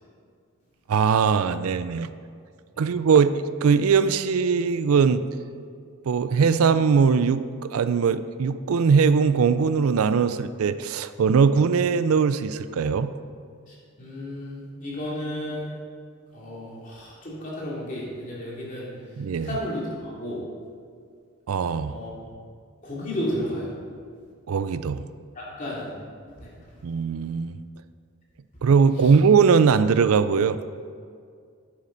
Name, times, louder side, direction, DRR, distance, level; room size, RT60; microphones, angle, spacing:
voice 1, 0.9-2.1 2.8-5.2 6.1-13.1 19.2-19.6 21.5-22.0 24.5-25.1 26.8-27.6 28.6-30.6, right 5 dB, 75° right, 13 dB, 0.4 m, -20 dB
voice 2, 14.0-15.6 16.3-18.9 19.4-20.4 21.8-22.1 22.8-23.7 25.3-25.9 26.4-26.5, equal, 35° left, -6 dB, 2.7 m, -32 dB
10.5 x 8.6 x 3.9 m, 2.2 s
head